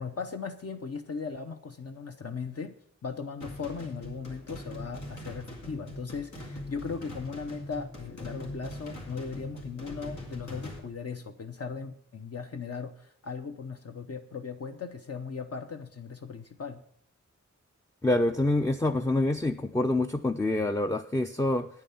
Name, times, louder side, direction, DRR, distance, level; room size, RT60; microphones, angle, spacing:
voice 1, 0.0-16.8, left 5 dB, 55° left, 6 dB, 0.7 m, -38 dB
sound 1, 3.4-10.8, left 1 dB, 75° left, 2.9 m, -42 dB
voice 2, 18.0-21.7, left 2 dB, 10° left, 7 dB, 0.4 m, -26 dB
9.4 x 8.9 x 5.6 m, 0.63 s
wide cardioid pair, 95°, 30 cm